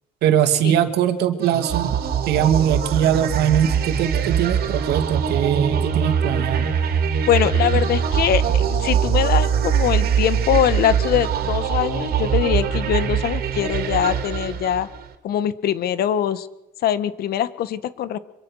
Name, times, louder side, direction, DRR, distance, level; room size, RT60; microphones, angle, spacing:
voice 1, 0.2-1.9 2.3-6.7, right 9 dB, 80° right, 8 dB, 2.6 m, -21 dB
sound 1, 1.4-15.1, right 7 dB, 65° right, 3.3 m, -22 dB
voice 2, 7.3-14.9 15.2-16.5 16.8-18.2, left 10 dB, 65° left, 15 dB, 1.5 m, -22 dB
25.0 x 24.0 x 6.5 m, 0.86 s
cardioid pair, 110°, 17 cm